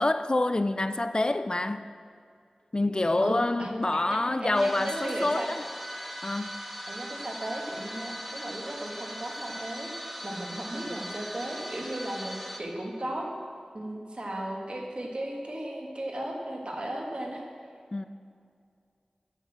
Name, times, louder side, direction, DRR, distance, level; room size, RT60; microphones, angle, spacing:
voice 1, 0.0-1.8 2.7-5.6 6.2-6.5 17.9-18.1, left 2 dB, 40° left, 0.4 m, -27 dB
voice 2, 3.2-5.5 6.9-13.3 13.7-17.4, right 1 dB, 55° right, 1.7 m, -36 dB
sound 1, 4.5-12.6, equal, 5° right, 1.0 m, -39 dB
8.2 x 7.0 x 7.3 m
wide cardioid pair, 50°, 2 cm